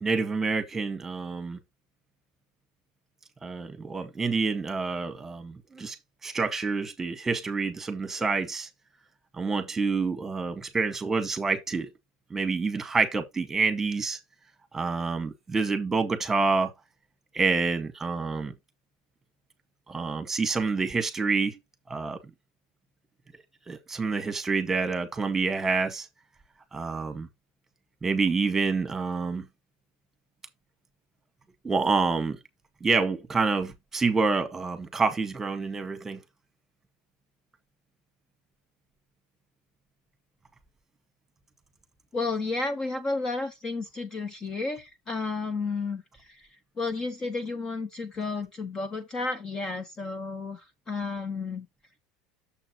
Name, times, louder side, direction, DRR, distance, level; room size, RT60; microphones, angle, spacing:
voice 1, 0.0-1.6 3.4-6.0 6.2-8.7 9.4-11.9 12.3-14.2 14.7-16.7 17.3-18.5 19.9-21.6 21.9-22.2 23.7-26.1 26.7-27.3 28.0-29.5 31.6-32.4 32.8-36.2, right 4 dB, 10° right, 1.7 m, -27 dB
voice 2, 42.1-46.5 46.8-51.7, left 3 dB, 25° left, 1.0 m, -32 dB
8.6 x 7.2 x 3.0 m
supercardioid pair, 135°, 3 cm